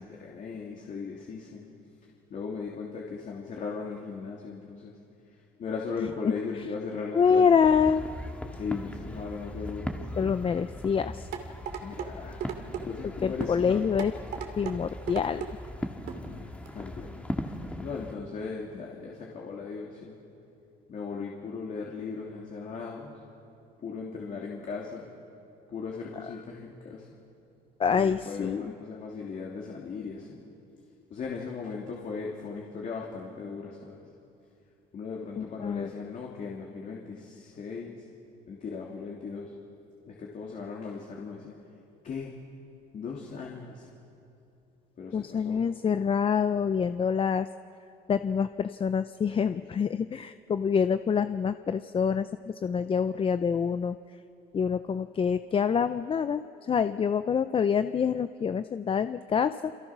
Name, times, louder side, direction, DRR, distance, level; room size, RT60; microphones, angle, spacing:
voice 1, 0.0-1.6 2.3-5.0 5.3-7.5 8.6-10.0 11.8-12.4 12.7-13.8 16.3-20.2 20.9-23.2 23.8-25.1 25.7-27.1 27.9-30.4 31.1-34.0 34.9-38.0 38.5-39.5 40.1-41.5 42.0-42.3 42.9-43.9 45.0-45.6, left 5 dB, 50° left, -2 dB, 3.1 m, -38 dB
voice 2, 7.1-8.0 10.2-11.3 13.2-14.1 14.6-15.5 27.8-28.7 35.4-35.9 45.1-47.5 48.1-54.0 54.5-59.7, left 6 dB, 30° left, 11 dB, 0.6 m, -26 dB
sound 1, 7.6-18.1, left 1 dB, 10° left, 1.8 m, -39 dB
sound 2, 11.3-12.1 12.4-12.8 13.4-13.6 14.0-14.8 15.1-15.5 16.1-16.2 16.7-16.8, right 9 dB, 75° right, 2.8 m, -35 dB
28.0 x 27.5 x 6.1 m, 2.7 s
cardioid pair, 110°, 17 cm